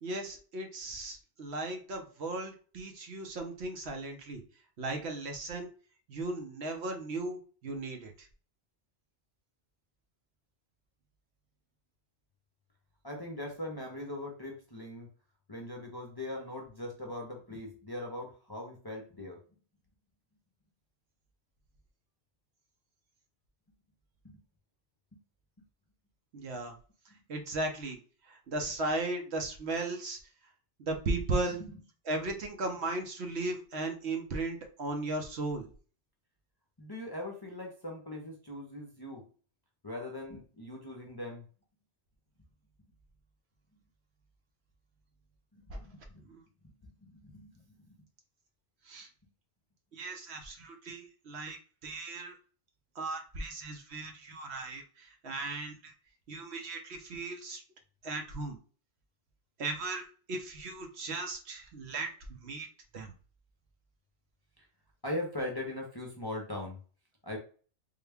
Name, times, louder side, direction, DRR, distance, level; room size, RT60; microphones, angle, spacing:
voice 1, 0.0-4.4 4.8-5.7 6.1-8.3 26.3-26.7 27.3-28.0 28.3-30.2 30.8-31.6 32.1-35.7 45.7-45.8 48.9-49.1 49.9-51.6 51.8-52.3 53.0-55.9 56.3-57.6 58.0-58.6 59.6-62.1 62.4-62.7 62.9-63.1, right 2 dB, 70° right, 4 dB, 1.0 m, -36 dB
voice 2, 13.0-15.1 15.5-19.4 24.2-24.4 25.1-25.2 31.6-31.8 36.8-39.3 39.8-41.4 45.5-46.2 46.8-47.6 47.9-48.0 64.6-64.7 65.0-66.8 67.2-67.4, left 1 dB, 25° left, 0 dB, 0.5 m, -40 dB
3.7 x 2.2 x 3.4 m, 0.39 s
omnidirectional pair, 1.2 m